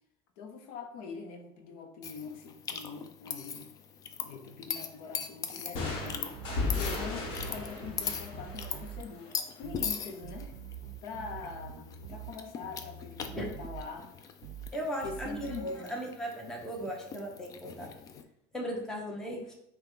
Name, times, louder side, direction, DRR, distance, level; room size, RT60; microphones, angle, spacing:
voice 1, 0.4-3.7 4.2-6.4 6.7-10.5 11.0-14.1 15.0-16.0 19.3-19.5, left 5 dB, 70° left, 5 dB, 0.7 m, -43 dB
sound 1, 2.0-18.2, left 7 dB, 30° left, 0.4 m, -41 dB
sound 2, 5.7-9.4, left 3 dB, 45° left, 1.1 m, -35 dB
sound 3, 6.0-7.6 7.8-9.1 9.6-9.9 10.2-12.4 12.6-13.9 14.4-14.7 15.0-15.6, right 8 dB, 60° right, 0.5 m, -45 dB
voice 2, 14.7-17.9 18.5-19.5, equal, 5° left, -1 dB, 0.8 m, -37 dB
5.6 x 2.2 x 3.7 m, 0.75 s
cardioid pair, 145°, 12 cm